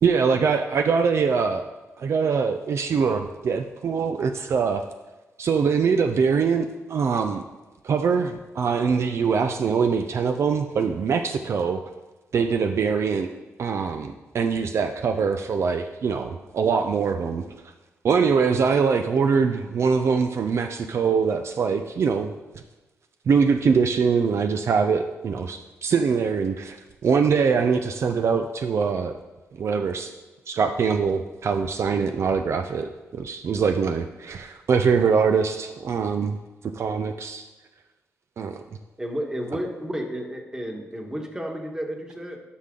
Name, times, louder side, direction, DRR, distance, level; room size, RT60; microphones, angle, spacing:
voice 1, 0.0-1.6 2.0-4.8 5.4-7.4 7.8-11.8 12.3-13.3 13.6-17.4 18.0-22.3 23.3-26.8 27.0-29.2 29.5-30.1 30.5-36.4 36.7-37.4 38.4-38.6, right 5 dB, 60° right, 7 dB, 0.5 m, -23 dB
voice 2, 39.0-42.4, equal, 15° right, 3 dB, 1.4 m, -32 dB
9.9 x 5.8 x 3.8 m, 1.1 s
cardioid pair, 75°, 5 cm